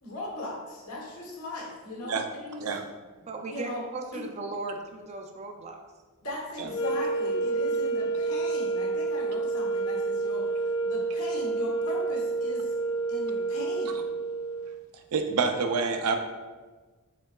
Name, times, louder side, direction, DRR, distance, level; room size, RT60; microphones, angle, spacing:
voice 1, 0.0-2.8 3.5-3.8 4.1-4.3 6.2-10.5 10.8-12.7 13.1-14.0, left 2 dB, 80° left, -3 dB, 1.1 m, -38 dB
voice 2, 3.2-5.8, right 3 dB, 30° right, 4 dB, 0.4 m, -37 dB
sound 1, 6.6-14.8, right 3 dB, 60° left, 0.3 m, -29 dB
voice 3, 15.1-16.2, right 5 dB, 85° right, 5 dB, 0.5 m, -27 dB
4.4 x 3.8 x 2.3 m, 1.3 s
head